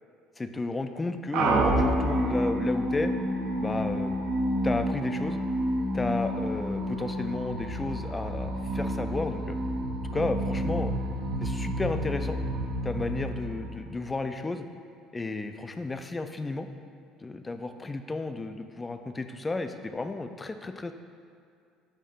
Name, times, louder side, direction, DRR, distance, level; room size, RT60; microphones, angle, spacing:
voice 1, 0.4-3.1 3.6-4.2 4.6-5.4 5.9-9.6 10.1-10.9 11.4-12.4 12.8-14.6 15.1-16.7 17.2-20.9, left 3 dB, 20° left, 8 dB, 0.4 m, -32 dB
sound 1, 1.3-14.2, right 1 dB, 60° right, 0.6 m, -29 dB
6.6 x 2.7 x 5.4 m, 2.3 s
figure-of-eight pair, 60°, 0 cm